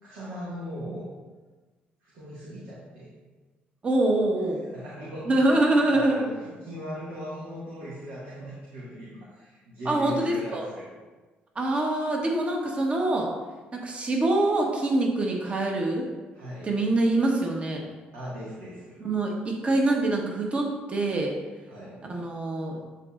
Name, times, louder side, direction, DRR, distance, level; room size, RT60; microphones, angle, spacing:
voice 1, 0.0-1.1 2.0-3.1 4.7-5.5 5.9-10.9 16.3-16.7 18.1-19.0 21.7-22.0, equal, 85° right, -9 dB, 1.8 m, -39 dB
voice 2, 3.8-4.6 5.2-6.2 9.8-10.7 11.5-13.3 13.7-16.1 16.6-17.8 19.0-21.3 22.1-22.8, right 2 dB, 35° right, 0 dB, 1.2 m, -25 dB
11.5 x 4.0 x 2.5 m, 1.3 s
cardioid pair, 90°, 4 cm